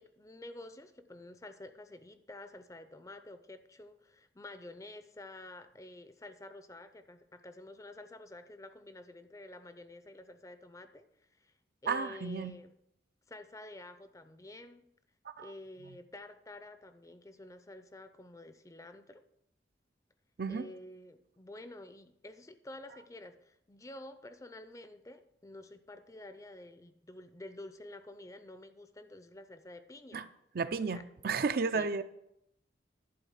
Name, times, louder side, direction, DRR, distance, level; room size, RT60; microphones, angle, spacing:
voice 1, 0.0-11.1 11.3-11.5 11.8-12.8 13.3-14.8 15.4-19.2 20.5-30.2 30.9-31.0 31.7-32.0, left 1 dB, 20° left, 11 dB, 0.5 m, -50 dB
voice 2, 11.9-12.5 15.3-15.5 20.4-20.7 30.1-30.3 30.5-32.0, right 4 dB, 55° right, 11 dB, 0.5 m, -33 dB
11.0 x 4.1 x 7.2 m, 0.79 s
head